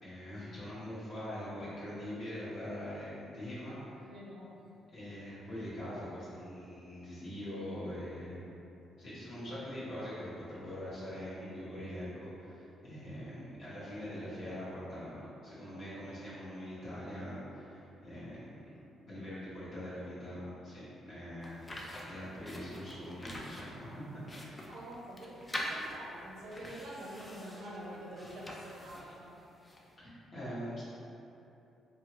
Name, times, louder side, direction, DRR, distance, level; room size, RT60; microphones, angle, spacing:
voice 1, 0.0-4.1 4.9-8.4 9.0-18.8 19.1-21.7 22.0-24.0 24.4-24.7 30.0-30.8, equal, 55° left, -11 dB, 1.3 m, -43 dB
voice 2, 3.7-4.7 24.7-29.4, right 1 dB, 80° right, -4 dB, 0.5 m, -47 dB
sound 1, 21.4-29.9, left 1 dB, 20° left, 0.4 m, -45 dB
2.7 x 2.7 x 3.0 m, 2.8 s
cardioid pair, 110°, 0 cm